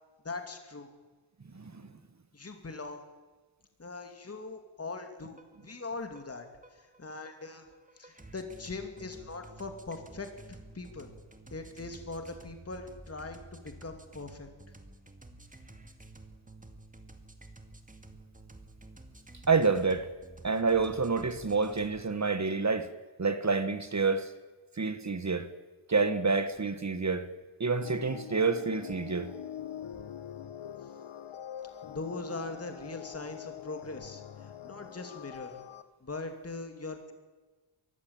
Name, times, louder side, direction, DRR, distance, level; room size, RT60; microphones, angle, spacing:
voice 1, 0.2-0.9 2.3-3.0 3.8-6.5 6.7-7.7 8.0-11.1 11.5-14.5 31.8-35.6 36.0-37.1, left 3 dB, 30° left, 2.6 m, -41 dB
voice 2, 1.5-1.9 19.5-20.1 20.4-22.9 23.2-24.3 24.8-25.5 25.9-27.3 27.6-29.3, right 4 dB, 35° right, 1.4 m, -28 dB
sound 1, 5.3-22.0, right 2 dB, 15° right, 2.3 m, -52 dB
sound 2, 27.8-35.8, left 9 dB, 70° left, 1.3 m, -44 dB
22.5 x 15.5 x 8.8 m
wide cardioid pair, 95°, 50 cm